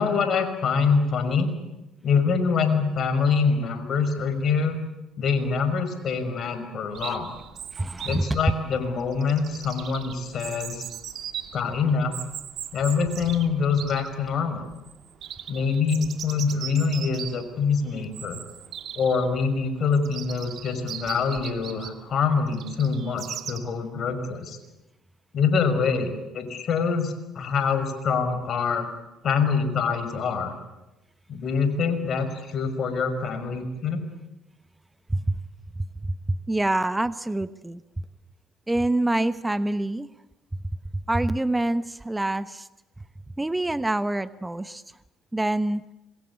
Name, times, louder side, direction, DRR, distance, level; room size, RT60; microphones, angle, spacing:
voice 1, 0.0-1.5 2.0-4.8 5.2-7.3 8.0-10.9 11.5-12.2 12.7-14.7 15.5-18.4 19.0-24.6 25.3-28.9 29.2-30.6 31.3-34.0, left 5 dB, 55° left, 9 dB, 5.8 m, -25 dB
Chirp tweet, 6.9-23.6, right 9 dB, 60° right, 2.6 m, -39 dB
voice 2, 7.7-8.4 35.1-35.3 36.3-38.0 38.7-40.1 41.1-42.7 43.4-44.8 45.3-45.8, right 1 dB, 15° right, 14 dB, 1.1 m, -26 dB
26.5 x 24.0 x 8.5 m, 0.97 s
hypercardioid pair, 65°, 0 cm